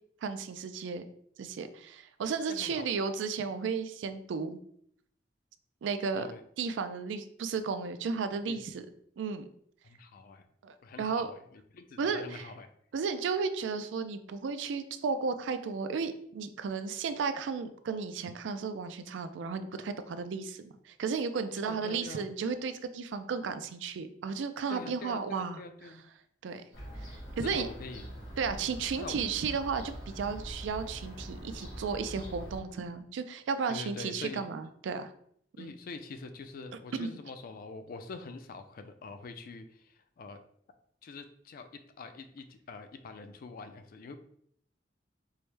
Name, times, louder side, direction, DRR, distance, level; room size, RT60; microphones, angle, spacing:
voice 1, 0.2-1.0 1.4-4.6 5.8-6.3 6.6-8.8 9.2-9.5 10.6-11.3 12.0-12.5 12.9-25.6 26.4-26.6 27.0-27.1 27.4-27.7 28.4-35.1 35.6-35.7 37.0-37.2, right 5 dB, 85° right, 10 dB, 0.3 m, -34 dB
voice 2, 2.5-2.9 6.1-6.4 8.5-8.6 9.8-10.5 10.8-12.7 21.6-22.3 24.7-26.1 27.4-28.1 29.0-29.2 33.7-34.4 35.6-40.4 41.0-44.2, left 4 dB, 50° left, 8 dB, 0.3 m, -44 dB
Fowl / Gull seagull, 26.7-32.6, equal, 80° left, 1.5 m, -43 dB
4.6 x 2.1 x 3.2 m, 0.67 s
head